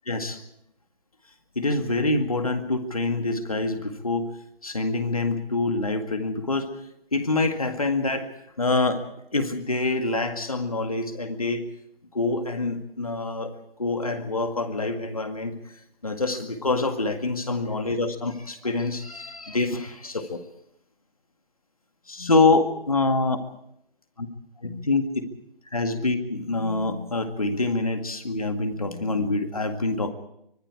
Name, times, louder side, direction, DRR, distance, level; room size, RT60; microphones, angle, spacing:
voice 1, 0.1-0.4 1.6-4.3 4.6-6.7 7.1-8.3 8.6-9.0 9.3-11.7 12.1-13.5 13.8-15.5 16.0-20.4 22.1-23.4 24.2-24.3 24.6-25.3 25.7-30.1, left 3 dB, 40° left, 7 dB, 2.0 m, -25 dB
25.0 x 23.0 x 4.9 m, 0.77 s
figure-of-eight pair, 180°, 29 cm